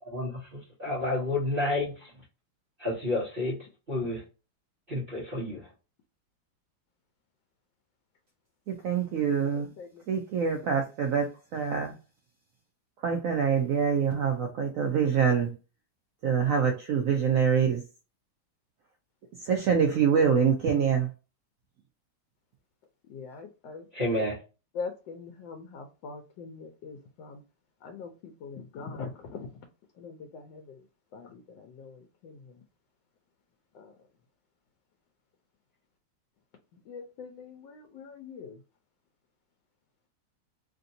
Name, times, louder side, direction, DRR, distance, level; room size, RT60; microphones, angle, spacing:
voice 1, 0.0-2.1 2.8-3.6 3.9-4.2 4.9-5.6 23.9-24.4, left 2 dB, 35° right, 1.1 m, -30 dB
voice 2, 8.7-9.7 10.1-11.9 13.0-15.5 16.2-17.8 19.4-21.1, right 7 dB, 75° right, 0.7 m, -25 dB
voice 3, 9.4-10.0 23.1-23.8 24.2-24.3 24.7-27.4 27.8-29.5 30.0-30.8 31.1-32.5 33.7-33.9 36.9-38.6, left 5 dB, 80° left, 1.3 m, -42 dB
3.3 x 2.6 x 2.6 m
omnidirectional pair, 2.0 m